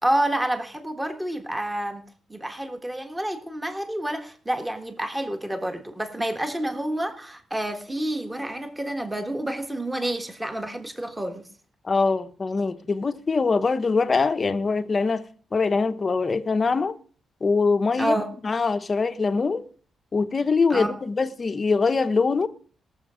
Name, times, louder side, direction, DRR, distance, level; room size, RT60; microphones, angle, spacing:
voice 1, 0.0-2.0 2.3-11.4 18.0-18.3 20.7-20.9, right 1 dB, 10° right, 1.5 m, -28 dB
voice 2, 11.8-17.0 17.4-18.2 18.4-19.7 20.1-22.5, left 4 dB, 30° left, 0.9 m, -23 dB
20.5 x 7.3 x 5.0 m
wide cardioid pair, 150°, 0 cm